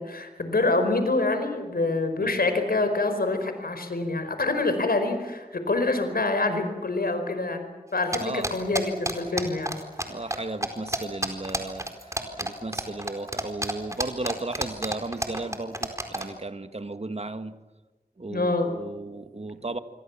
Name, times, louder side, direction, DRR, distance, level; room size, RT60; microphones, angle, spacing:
voice 1, 0.0-9.7 18.3-18.8, left 2 dB, 80° left, 7 dB, 4.7 m, -26 dB
sound 1, 8.1-10.0 10.3-10.4 10.6-16.3, right 1 dB, 20° right, 4.3 m, -29 dB
voice 2, 8.2-8.5 10.1-17.6 18.2-19.8, right 2 dB, 45° right, 10 dB, 1.8 m, -35 dB
26.5 x 23.5 x 7.3 m, 1.2 s
wide cardioid pair, 45°, 15 cm